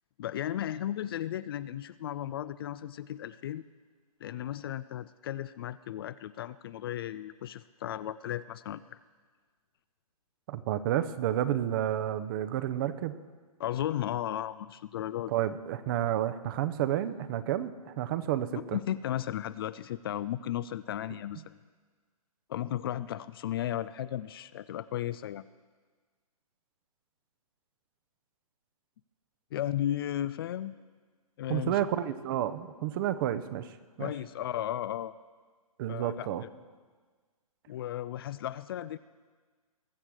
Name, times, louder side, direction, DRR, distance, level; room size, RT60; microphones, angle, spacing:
voice 1, 0.2-3.6 4.2-9.0 13.6-15.3 18.5-21.6 22.5-25.4 29.5-30.7 31.4-31.9 34.0-35.1 35.9-36.3 37.7-39.0, left 12 dB, 40° left, 16 dB, 0.4 m, -35 dB
voice 2, 10.5-13.2 15.3-18.8 31.5-34.1 35.8-36.4, right 11 dB, 35° right, 12 dB, 0.8 m, -30 dB
21.0 x 7.2 x 6.3 m, 1.5 s
hypercardioid pair, 135°, 19 cm